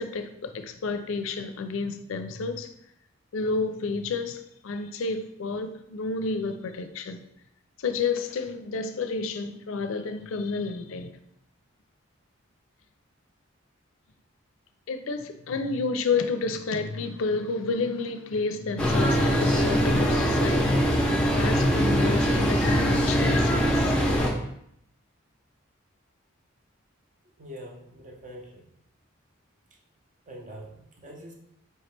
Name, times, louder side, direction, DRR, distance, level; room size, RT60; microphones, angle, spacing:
voice 1, 0.0-2.7 3.3-7.2 7.8-11.1 14.9-24.0, left 4 dB, 80° left, 8 dB, 0.4 m, -30 dB
sound 1, 18.8-24.3, equal, 5° left, 0.5 m, -22 dB
voice 2, 27.4-28.6 30.3-31.3, equal, 40° right, 1 dB, 0.7 m, -44 dB
4.6 x 2.9 x 3.2 m, 0.76 s
head